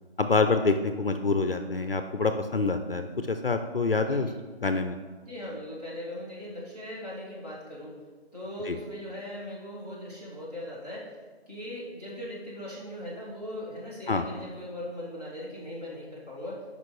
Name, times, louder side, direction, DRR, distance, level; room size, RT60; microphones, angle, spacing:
voice 1, 0.2-4.3 4.6-5.0 8.7-8.8 14.1-14.2, left 3 dB, 60° left, 8 dB, 0.5 m, -26 dB
voice 2, 4.0-4.4 5.2-8.0 8.3-11.2 11.5-16.7, left 1 dB, 35° right, -7 dB, 2.4 m, -39 dB
11.0 x 5.3 x 3.2 m, 1.4 s
figure-of-eight pair, 175°, 33 cm